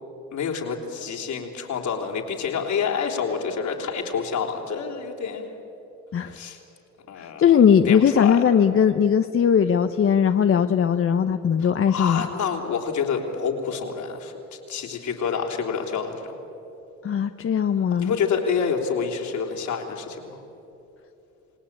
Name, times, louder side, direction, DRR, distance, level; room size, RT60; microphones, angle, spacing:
voice 1, 0.3-5.5 6.3-6.6 7.1-7.5 7.9-8.4 11.6-16.4 17.9-20.4, left 6 dB, 70° left, 1 dB, 3.6 m, -28 dB
voice 2, 7.2-12.2 17.0-18.2, left 8 dB, 45° left, 8 dB, 0.8 m, -19 dB
28.0 x 18.5 x 8.8 m, 3.0 s
cardioid pair, 90°, 30 cm